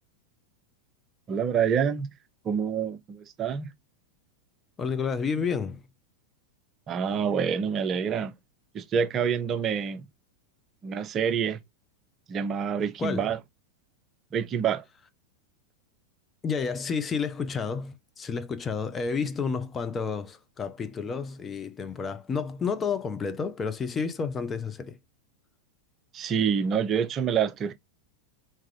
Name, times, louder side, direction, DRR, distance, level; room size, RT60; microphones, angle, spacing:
voice 1, 1.3-2.1 2.4-3.7 6.9-8.3 8.7-10.0 10.8-11.6 12.3-13.4 14.3-14.8 26.1-27.7, right 7 dB, 30° right, 0.6 m, -27 dB
voice 2, 4.8-5.8 13.0-13.3 16.4-25.0, left 5 dB, 20° left, 0.6 m, -30 dB
4.4 x 3.7 x 3.2 m
figure-of-eight pair, 90°, 0 cm